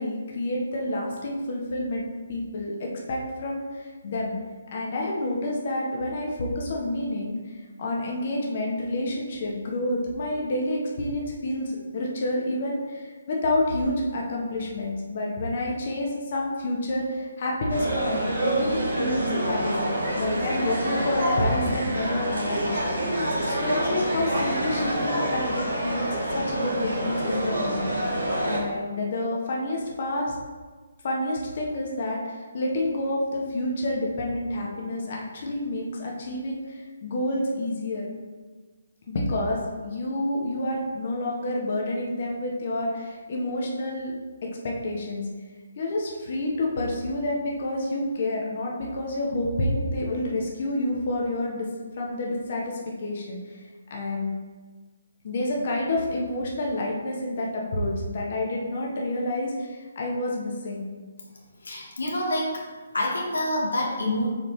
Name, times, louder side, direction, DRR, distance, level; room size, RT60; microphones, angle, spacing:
voice 1, 0.0-4.3 4.7-19.8 20.1-22.7 23.2-27.9 28.4-30.4 31.0-38.1 39.1-44.1 44.4-45.3 45.8-51.7 51.9-53.6 53.9-54.3 55.2-60.9, left 1 dB, 45° left, -2 dB, 1.2 m, -29 dB
sound 1, 17.7-28.6, right 1 dB, 80° right, 1.7 m, -27 dB
voice 2, 61.6-62.6 62.9-64.3, left 1 dB, 70° left, -1 dB, 1.2 m, -27 dB
7.0 x 4.3 x 3.3 m, 1.4 s
figure-of-eight pair, 140°, 0 cm